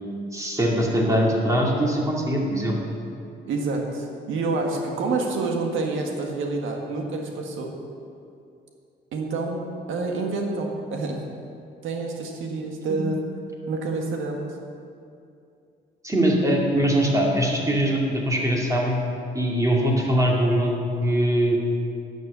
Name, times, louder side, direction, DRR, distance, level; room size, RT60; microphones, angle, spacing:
voice 1, 0.3-2.8 12.9-13.0 16.0-19.0 19.3-20.7 21.0-21.6, right 1 dB, 15° right, -2 dB, 2.4 m, -22 dB
voice 2, 3.5-7.7 9.1-11.2 11.8-13.2 13.7-14.5, right 3 dB, 80° right, 2 dB, 1.6 m, -28 dB
10.5 x 6.8 x 6.9 m, 2.5 s
cardioid pair, 90°, 20 cm